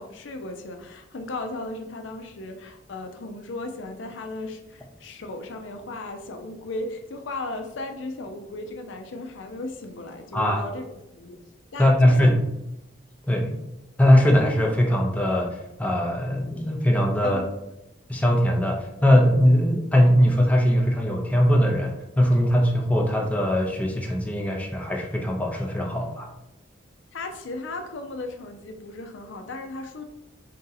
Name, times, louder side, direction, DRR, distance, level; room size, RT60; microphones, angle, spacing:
voice 1, 0.0-11.4 11.7-12.3 13.5-13.6 17.2-17.4 27.1-30.0, left 2 dB, 75° left, 0.5 m, -36 dB
voice 2, 10.3-10.6 11.8-12.4 13.2-13.6 14.0-17.4 18.1-26.3, equal, 5° left, 0.4 m, -20 dB
3.6 x 2.7 x 3.9 m
head